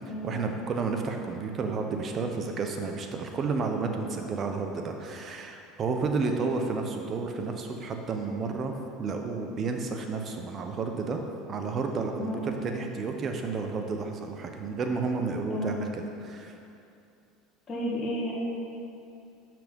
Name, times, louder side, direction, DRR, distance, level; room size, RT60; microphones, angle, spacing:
voice 1, 0.2-11.2 11.5-16.6, right 4 dB, 40° right, 4 dB, 0.9 m, -31 dB
voice 2, 6.2-6.5 12.2-12.4 15.5-15.7 17.7-18.3, left 1 dB, 30° left, -6 dB, 1.7 m, -33 dB
6.0 x 5.9 x 5.3 m, 2.6 s
supercardioid pair, 105°, 0 cm